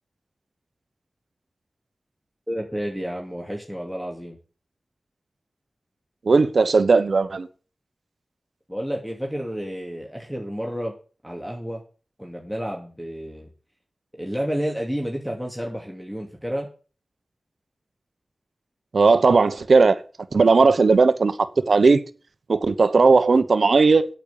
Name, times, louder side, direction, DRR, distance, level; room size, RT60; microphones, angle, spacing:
voice 1, 2.5-4.4 8.7-10.9 11.2-11.8 12.2-13.5 14.1-16.7, equal, 5° left, 2.6 m, -30 dB
voice 2, 6.2-7.5 18.9-20.0 20.3-21.3 21.7-22.0 22.5-24.1, right 4 dB, 75° right, 1.0 m, -17 dB
8.9 x 8.2 x 7.1 m
cardioid pair, 40°, 0 cm